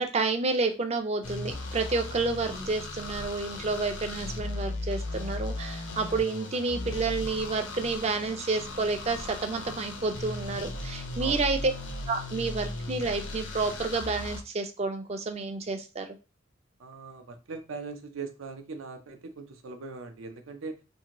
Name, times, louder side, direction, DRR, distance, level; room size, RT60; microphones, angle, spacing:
voice 1, 0.0-11.7 12.1-16.1, right 3 dB, 30° right, 6 dB, 0.4 m, -30 dB
sound 1, 1.2-14.4, left 2 dB, 70° left, 0.6 m, -37 dB
voice 2, 11.2-11.5 16.8-20.8, right 4 dB, 80° right, 6 dB, 0.5 m, -40 dB
2.7 x 2.5 x 2.9 m, 0.30 s
head